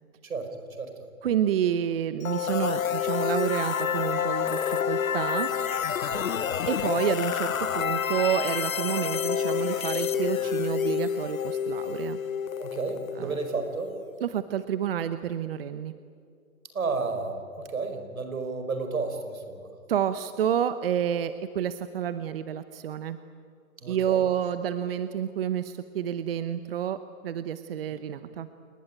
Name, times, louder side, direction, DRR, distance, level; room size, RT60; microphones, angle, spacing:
voice 1, 0.2-1.1 6.0-6.3 12.6-13.9 16.7-19.7 23.8-24.2 27.9-28.0, right 4 dB, 80° right, 7 dB, 5.4 m, -32 dB
voice 2, 1.2-5.5 6.7-12.2 13.2-13.3 14.2-15.9 19.9-23.2 23.9-28.5, right 9 dB, 45° right, 12 dB, 1.0 m, -29 dB
sound 1, 2.2-14.0, left 8 dB, 75° left, 1.3 m, -29 dB
28.5 x 20.5 x 9.0 m, 2.3 s
hypercardioid pair, 150°, 41 cm